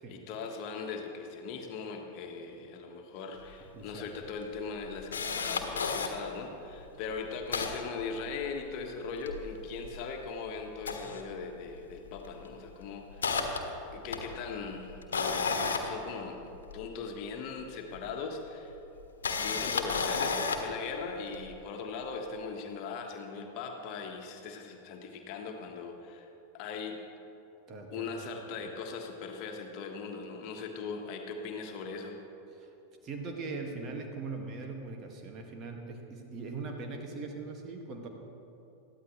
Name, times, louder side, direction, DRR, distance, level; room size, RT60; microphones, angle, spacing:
voice 1, 0.0-13.3 13.9-18.7 19.4-26.3 26.5-27.0 27.9-32.2, left 5 dB, 45° left, 3 dB, 1.5 m, -40 dB
Camera, 3.5-3.6 3.9-4.0 4.4-6.1 6.7-6.8 7.1-8.7 9.0-10.3 10.7-11.8 12.1-12.4 12.8-16.8 17.9-18.0 19.0-20.8 21.3-21.5, left 5 dB, 65° left, 1.4 m, -33 dB
voice 2, 3.7-4.2 27.7-28.7 32.5-32.7 33.0-38.1, right 3 dB, 30° right, 2 dB, 2.0 m, -41 dB
21.5 x 14.5 x 3.3 m, 2.9 s
figure-of-eight pair, 90°, 0 cm